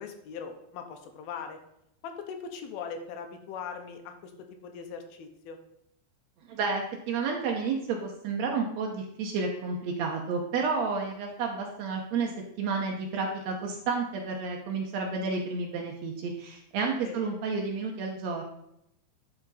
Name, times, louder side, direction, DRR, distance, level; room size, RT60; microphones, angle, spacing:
voice 1, 0.0-1.6 2.0-4.3 4.6-5.6 17.0-17.2, left 6 dB, 80° left, 6 dB, 2.6 m, -40 dB
voice 2, 6.4-12.3 12.6-18.4, right 4 dB, 80° right, 0 dB, 1.5 m, -31 dB
11.5 x 4.9 x 4.1 m, 0.80 s
omnidirectional pair, 4.4 m